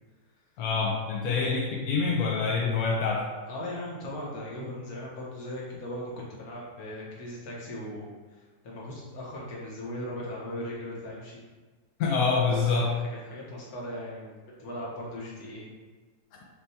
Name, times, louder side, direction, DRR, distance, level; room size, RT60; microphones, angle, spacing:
voice 1, 0.6-3.3 12.0-12.9, left 4 dB, 75° left, -2 dB, 0.9 m, -26 dB
voice 2, 3.5-8.1 8.3-11.4 12.5-14.3 14.6-15.7, left 1 dB, 55° left, -4 dB, 1.3 m, -38 dB
6.3 x 2.3 x 2.7 m, 1.3 s
omnidirectional pair, 2.1 m